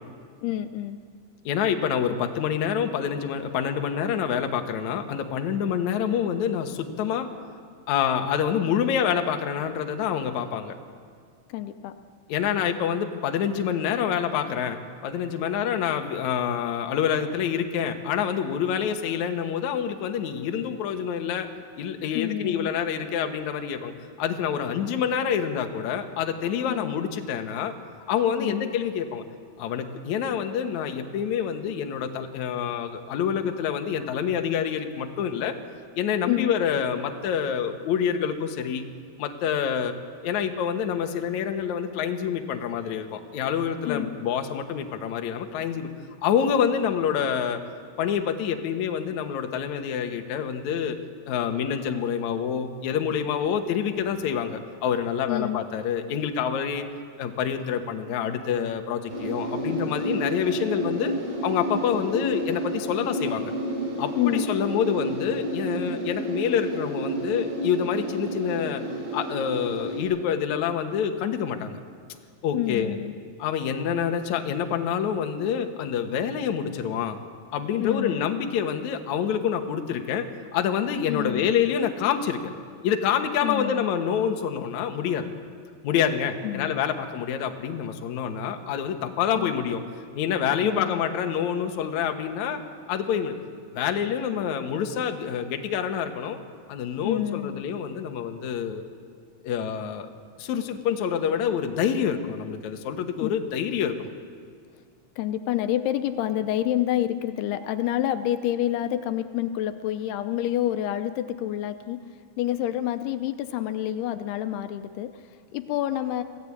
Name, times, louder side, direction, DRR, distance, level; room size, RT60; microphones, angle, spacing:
voice 1, 0.4-1.0 11.5-12.0 22.1-22.7 26.7-26.9 28.4-28.7 36.3-36.5 43.9-44.1 55.2-55.6 64.2-64.5 72.5-73.1 77.8-78.4 81.1-81.5 83.4-83.8 86.4-86.8 89.4-89.5 90.6-91.0 97.0-97.6 103.2-103.3 105.2-112.0 112.4-116.2, left 12 dB, 80° left, 9 dB, 2.8 m, -28 dB
voice 2, 1.5-7.3 7.9-10.7 12.3-21.5 21.8-27.7 28.1-29.2 29.6-35.5 36.0-38.8 39.2-39.9 40.2-45.9 46.2-47.6 48.0-51.0 51.3-56.9 57.2-61.1 61.4-63.5 64.0-68.8 69.1-71.8 72.4-73.0 73.4-77.2 77.5-80.3 80.5-82.4 82.8-85.3 85.8-89.8 90.1-92.6 92.9-93.3 93.7-96.4 96.7-98.9 99.4-100.1 100.4-104.1, left 8 dB, 60° left, 5 dB, 2.3 m, -27 dB
sound 1, 59.1-70.0, right 1 dB, 80° right, 7.8 m, -31 dB
26.5 x 17.0 x 8.6 m, 2.1 s
omnidirectional pair, 4.6 m